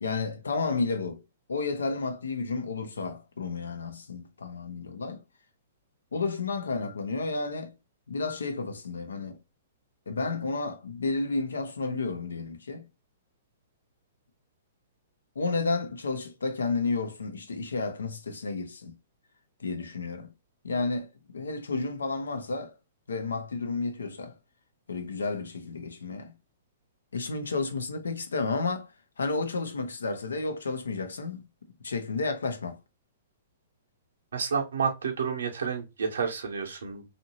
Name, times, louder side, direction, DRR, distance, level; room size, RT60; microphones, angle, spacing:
voice 1, 0.0-1.2 1.5-5.2 6.1-7.7 8.1-9.4 10.1-12.8 15.4-18.9 19.6-20.3 20.6-22.8 23.1-24.3 24.9-26.3 27.1-28.9 29.2-31.4 31.8-32.8, left 3 dB, 85° left, 0.6 m, -31 dB
voice 2, 34.3-37.0, right 6 dB, 75° right, 0.8 m, -30 dB
2.8 x 2.5 x 2.8 m
hypercardioid pair, 120°, 0 cm